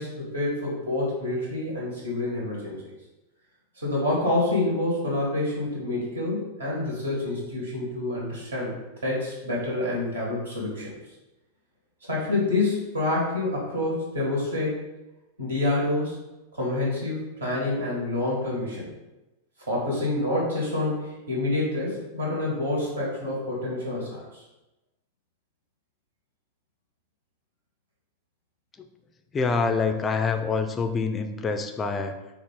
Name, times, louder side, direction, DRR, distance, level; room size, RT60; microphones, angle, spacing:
voice 1, 0.0-2.8 3.8-8.7 9.0-10.9 12.1-14.8 15.4-16.2 16.5-18.9 19.7-24.4, left 2 dB, 70° right, -4 dB, 1.4 m, -27 dB
voice 2, 29.3-32.2, left 4 dB, 20° left, 6 dB, 0.3 m, -26 dB
4.4 x 2.4 x 3.8 m, 1.0 s
figure-of-eight pair, 90°, 0 cm